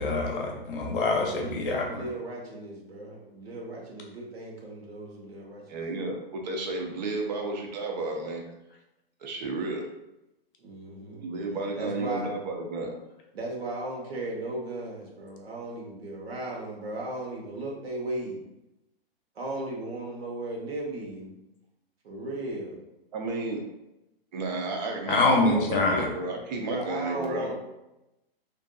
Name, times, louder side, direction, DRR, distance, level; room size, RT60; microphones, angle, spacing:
voice 1, 0.0-2.0 25.1-26.1, left 3 dB, 60° left, 1 dB, 0.6 m, -25 dB
voice 2, 1.3-5.6 6.1-6.2 10.6-11.2 11.7-12.3 13.3-18.4 19.4-21.3 22.0-22.8 26.6-27.5, right 2 dB, 85° right, -2 dB, 1.0 m, -36 dB
voice 3, 5.7-8.4 9.2-9.8 11.2-12.9 23.1-23.6 24.3-27.5, right 2 dB, 45° right, 1 dB, 0.6 m, -32 dB
2.6 x 2.4 x 2.3 m, 0.93 s
hypercardioid pair, 150°, 30 cm